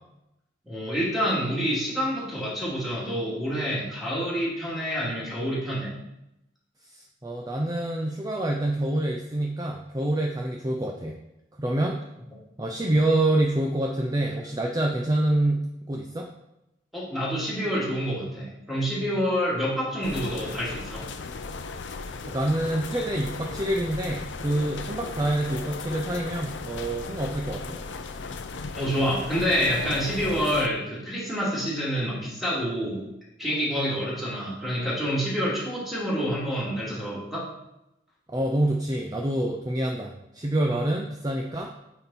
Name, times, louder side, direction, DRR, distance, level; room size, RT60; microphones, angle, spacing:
voice 1, 0.6-5.9 16.9-21.1 28.7-33.0 33.4-37.5, equal, ahead, -7 dB, 2.5 m, -27 dB
voice 2, 6.9-11.1 11.6-12.0 12.6-16.3 22.3-27.8 38.3-41.7, right 1 dB, 20° right, 1 dB, 0.6 m, -26 dB
sound 1, 20.0-30.7, left 4 dB, 90° left, 0.6 m, -36 dB
8.7 x 4.4 x 4.2 m, 0.88 s
head